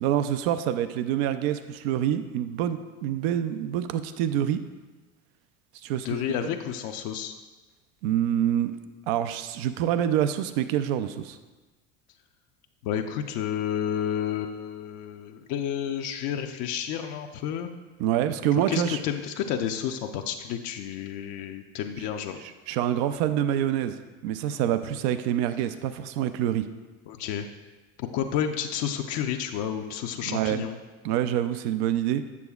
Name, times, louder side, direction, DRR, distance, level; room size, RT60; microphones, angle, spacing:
voice 1, 0.0-4.6 5.8-6.2 8.0-8.7 9.1-11.4 18.0-19.0 22.4-26.7 30.2-30.6 31.0-32.2, right 10 dB, 70° right, 11 dB, 0.5 m, -26 dB
voice 2, 6.0-7.3 12.8-17.7 18.7-22.4 27.1-27.5 28.0-30.7, left 9 dB, 60° left, 5 dB, 0.6 m, -30 dB
8.3 x 6.7 x 2.3 m, 1.2 s
supercardioid pair, 95°, 32 cm